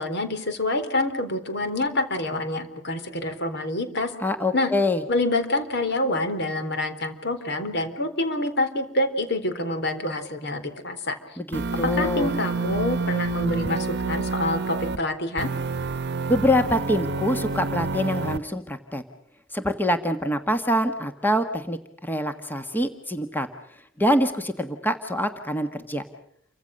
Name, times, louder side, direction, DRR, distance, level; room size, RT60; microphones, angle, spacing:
voice 1, 0.0-4.1 4.5-4.7 5.1-11.2 11.8-15.5, left 1 dB, 60° left, 9 dB, 4.0 m, -27 dB
voice 2, 4.2-5.0 11.4-12.3 16.3-19.0 19.5-23.5 24.0-26.0, left 1 dB, 10° left, 6 dB, 1.5 m, -25 dB
sound 1, 11.5-15.0 15.4-18.4, right 3 dB, 60° right, 1.0 m, -28 dB
29.5 x 25.0 x 6.6 m, 0.69 s
head